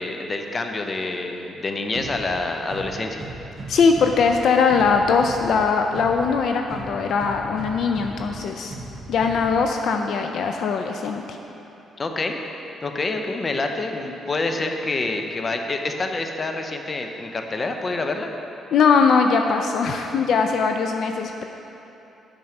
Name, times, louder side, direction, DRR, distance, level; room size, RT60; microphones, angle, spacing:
voice 1, 0.0-3.3 12.0-12.4 12.8-18.3, left 3 dB, 35° left, 4 dB, 0.7 m, -27 dB
sound 1, 1.9-9.9, right 2 dB, 25° right, 0.9 m, -38 dB
voice 2, 3.7-8.8 9.1-11.4 18.7-21.4, left 5 dB, 70° left, 4 dB, 0.4 m, -20 dB
7.5 x 5.3 x 5.9 m, 3.0 s
cardioid pair, 90°, 0 cm